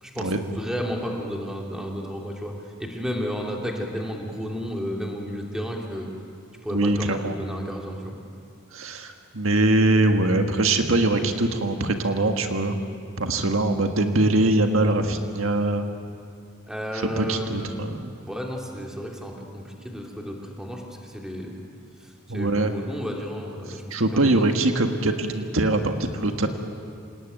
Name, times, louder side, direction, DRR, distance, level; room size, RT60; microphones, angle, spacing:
voice 1, 0.0-2.5 2.8-6.1 6.6-8.1 16.7-17.9 18.2-21.6 22.0-23.8 24.1-24.4, equal, 5° right, 0 dB, 2.8 m, -32 dB
voice 2, 6.7-7.4 8.7-12.8 13.2-15.9 17.2-18.2 22.3-22.7 23.7-26.5, right 2 dB, 80° right, 5 dB, 1.6 m, -22 dB
28.0 x 18.5 x 9.3 m, 2.4 s
head